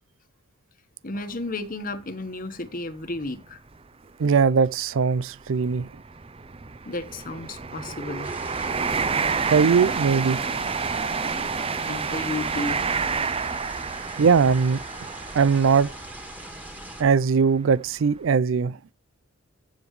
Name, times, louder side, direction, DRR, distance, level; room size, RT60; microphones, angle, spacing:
voice 1, 1.0-3.6 6.9-8.3 11.1-11.3 11.9-12.8, left 2 dB, 45° left, 1.2 m, -33 dB
sound 1, 1.2-1.3 1.9-2.0 3.2-3.3 3.5-3.7 4.4-17.1 17.7-17.9, right 5 dB, 30° right, 0.6 m, -29 dB
voice 2, 4.2-5.9 9.5-10.6 14.2-14.8 15.3-15.9 17.0-18.8, right 5 dB, 75° right, 0.4 m, -20 dB
sound 2, 8.2-17.0, right 1 dB, 10° right, 1.7 m, -41 dB
15.0 x 7.1 x 3.2 m
head